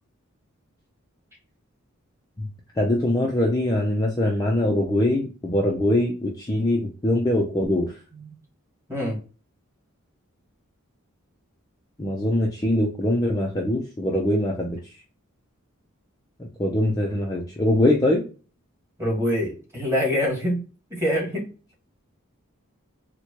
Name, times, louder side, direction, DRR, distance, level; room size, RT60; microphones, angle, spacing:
voice 1, 2.8-7.9 12.0-14.8 16.6-18.2, left 1 dB, 15° left, -1 dB, 0.5 m, -22 dB
voice 2, 19.0-20.6 20.9-21.5, equal, 10° right, -3 dB, 1.6 m, -25 dB
4.4 x 2.2 x 2.9 m, 0.35 s
head